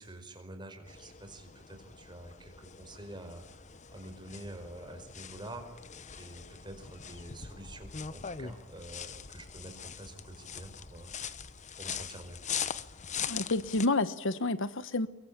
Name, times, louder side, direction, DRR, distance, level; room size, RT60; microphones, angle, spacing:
voice 1, 0.0-3.7 3.9-5.7 6.2-11.4 11.7-12.4, right 1 dB, 20° right, 6 dB, 4.7 m, -47 dB
sound 1, 0.9-13.9, left 7 dB, 35° left, 1.1 m, -42 dB
voice 2, 13.3-15.1, left 2 dB, 65° left, 14 dB, 1.2 m, -29 dB
24.0 x 22.5 x 8.7 m, 0.94 s
head